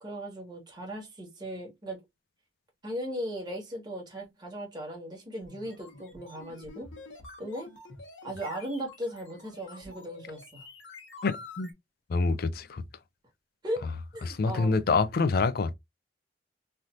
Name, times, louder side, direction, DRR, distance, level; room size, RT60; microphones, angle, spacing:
voice 1, 0.0-2.0 2.8-6.9 7.4-7.7 8.2-10.6 13.6-13.9 14.1-14.8, equal, 25° right, 1.4 m, -37 dB
sound 1, 5.3-11.7, left 3 dB, 85° left, 1.1 m, -48 dB
voice 2, 11.2-11.7 12.1-12.8 14.2-15.7, left 4 dB, 55° left, 0.4 m, -26 dB
3.3 x 2.8 x 2.4 m
head